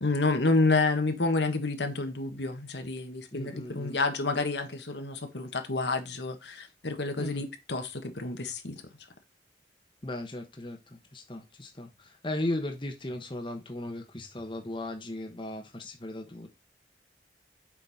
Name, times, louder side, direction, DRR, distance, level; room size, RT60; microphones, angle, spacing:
voice 1, 0.0-8.8, left 3 dB, 80° left, 1.5 m, -29 dB
voice 2, 3.3-4.0 7.2-7.4 10.0-16.5, left 1 dB, 30° left, 1.1 m, -37 dB
7.5 x 5.4 x 4.2 m
head